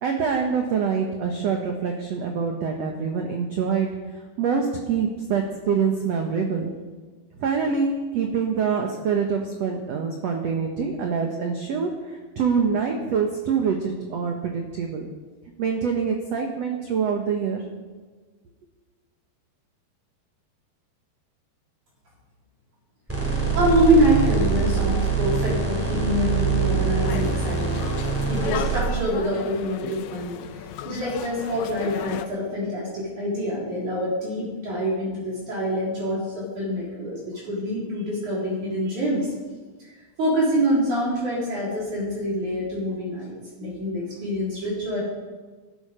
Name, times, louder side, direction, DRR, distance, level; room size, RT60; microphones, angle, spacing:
voice 1, 0.0-3.9 4.4-6.7 7.4-15.1 15.6-17.6, right 6 dB, 70° right, 3 dB, 1.5 m, -25 dB
sound 1, 23.1-28.8, right 5 dB, 5° right, 2.8 m, -24 dB
voice 2, 23.5-27.8 28.3-30.3 30.9-37.2 37.4-39.3 39.8-39.9 40.2-43.3 43.6-45.0, equal, 50° right, -5 dB, 4.7 m, -25 dB
sound 2, 27.0-32.3, left 9 dB, 80° left, 2.7 m, -35 dB
16.5 x 12.5 x 5.1 m, 1.4 s
omnidirectional pair, 4.6 m